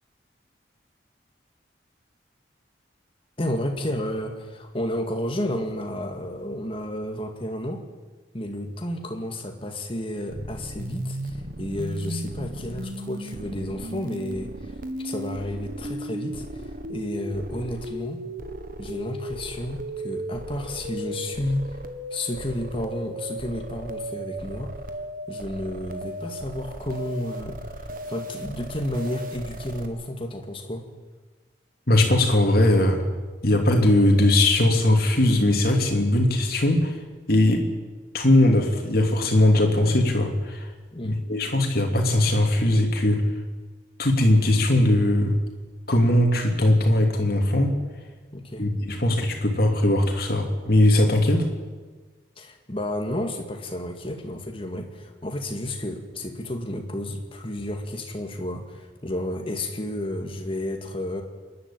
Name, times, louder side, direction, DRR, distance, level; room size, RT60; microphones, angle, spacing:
voice 1, 3.4-7.8 8.3-16.5 16.9-18.2 18.8-21.7 22.1-24.7 25.3-30.9 40.9-41.2 48.3-48.7 52.4-61.2, left 1 dB, 30° left, 4 dB, 2.1 m, -31 dB
sound 1, 10.3-29.8, right 1 dB, 50° right, 1.5 m, -36 dB
voice 2, 31.9-33.1 33.4-37.0 37.3-37.7 38.1-40.6 41.0-43.3 44.0-45.3 45.9-47.7 48.6-51.5, left 1 dB, 55° left, 2 dB, 3.0 m, -20 dB
26.0 x 11.5 x 9.1 m, 1.3 s
head